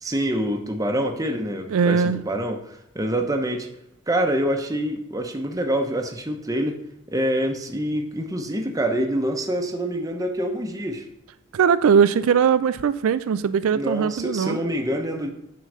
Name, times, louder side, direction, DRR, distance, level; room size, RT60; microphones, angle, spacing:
voice 1, 0.0-3.7 4.1-6.8 7.1-11.1 13.7-15.3, right 1 dB, 15° right, 0.9 m, -26 dB
voice 2, 1.7-2.2 11.5-14.6, right 6 dB, 75° right, 0.3 m, -20 dB
9.4 x 3.9 x 6.5 m
head